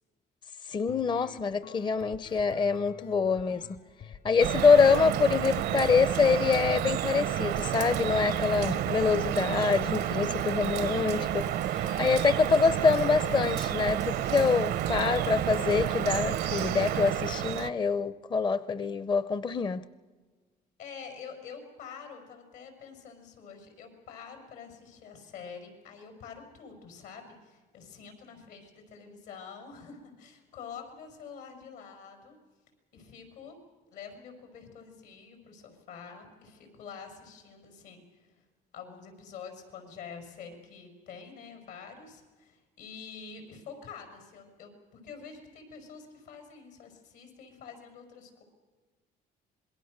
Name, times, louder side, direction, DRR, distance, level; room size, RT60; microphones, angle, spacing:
voice 1, 0.7-3.8 4.2-19.8, left 5 dB, 25° left, 0.6 m, -25 dB
sound 1, 0.9-16.9, left 8 dB, 65° left, 2.4 m, -49 dB
Drip, 4.4-17.7, right 12 dB, 70° right, 0.7 m, -30 dB
voice 2, 20.8-32.4 32.9-33.6 33.9-38.4 38.7-48.4, left 6 dB, 85° left, 5.8 m, -47 dB
26.5 x 21.5 x 6.6 m
cardioid pair, 110°, 17 cm